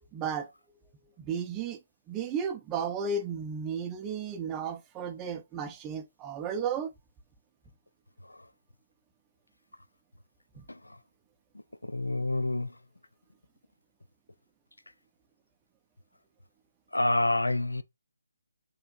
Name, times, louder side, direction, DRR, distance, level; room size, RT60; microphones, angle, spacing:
voice 1, 0.1-0.5 1.2-1.8 2.1-6.9 10.6-10.7, right 6 dB, 15° right, 0.5 m, -34 dB
voice 2, 11.9-12.7 16.9-17.8, left 2 dB, 90° left, 0.3 m, -27 dB
4.3 x 2.8 x 2.4 m
figure-of-eight pair, 150°, 0 cm